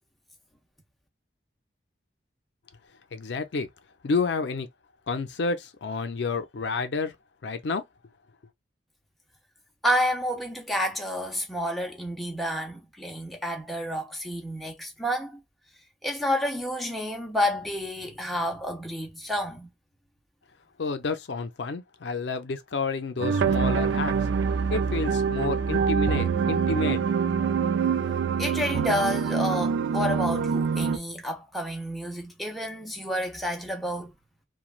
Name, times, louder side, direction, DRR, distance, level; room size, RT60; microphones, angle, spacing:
voice 1, 3.1-3.7 4.0-4.7 5.1-7.1 7.4-7.8 20.8-24.1 24.7-27.0, left 4 dB, 70° left, 0.5 m, -29 dB
voice 2, 9.8-15.4 16.0-19.7 28.4-34.1, equal, ahead, 0.7 m, -29 dB
sound 1, 23.2-31.0, right 6 dB, 80° right, 0.4 m, -25 dB
3.1 x 2.2 x 2.4 m
head